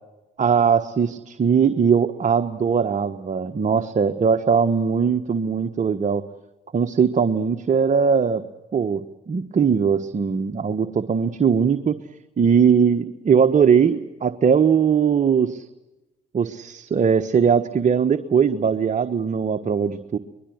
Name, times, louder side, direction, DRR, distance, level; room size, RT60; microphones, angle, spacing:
voice 1, 0.4-6.2 6.7-8.4 8.7-12.0 12.4-15.7 16.3-20.2, right 6 dB, 40° right, 8 dB, 1.3 m, -20 dB
24.0 x 21.5 x 8.0 m, 1.0 s
hypercardioid pair, 55°, 19 cm